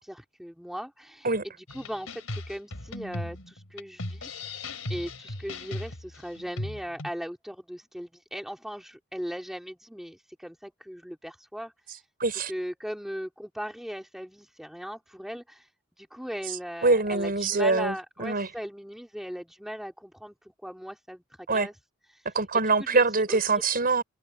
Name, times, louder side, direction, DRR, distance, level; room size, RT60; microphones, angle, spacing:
voice 1, 0.0-4.6 4.9-12.0 12.5-15.7 16.0-21.2 21.5-21.7 22.1-22.2 22.9-23.4, equal, ahead, 3.0 m, -38 dB
sound 1, 1.7-7.1, left 2 dB, 80° left, 3.8 m, -37 dB
voice 2, 12.2-12.5 16.8-18.5 21.5-21.7 22.3-24.0, right 3 dB, 45° right, 5.8 m, -24 dB
head